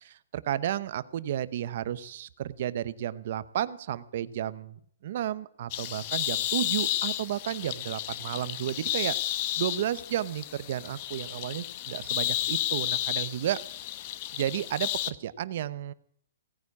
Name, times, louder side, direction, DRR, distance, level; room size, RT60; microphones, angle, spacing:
voice 1, 0.0-9.2 9.6-13.6 14.3-15.9, right 11 dB, 45° right, 16 dB, 0.9 m, -32 dB
sound 1, 5.7-15.1, left 14 dB, 35° left, 0.8 m, -32 dB
17.5 x 9.5 x 8.6 m, 0.64 s
hypercardioid pair, 170°, 0 cm